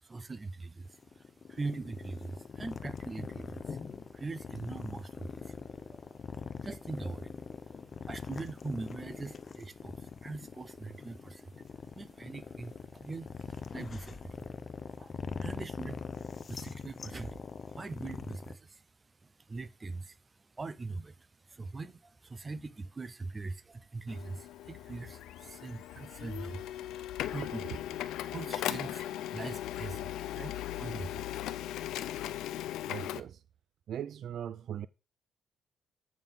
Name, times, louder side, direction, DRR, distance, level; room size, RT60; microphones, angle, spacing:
voice 1, 0.0-3.8 4.1-5.6 5.9-6.0 6.6-7.3 8.1-11.5 11.9-14.5 14.9-16.1 16.3-18.8 19.2-31.9, right 3 dB, 30° right, 0.7 m, -42 dB
sound 1, 0.9-18.6, left 5 dB, 40° left, 0.7 m, -43 dB
Printer, 24.1-33.2, left 12 dB, 85° left, 0.5 m, -38 dB
voice 2, 32.9-33.4 33.9-34.9, right 10 dB, 65° right, 0.3 m, -39 dB
8.7 x 6.0 x 3.6 m
cardioid pair, 90°, 0 cm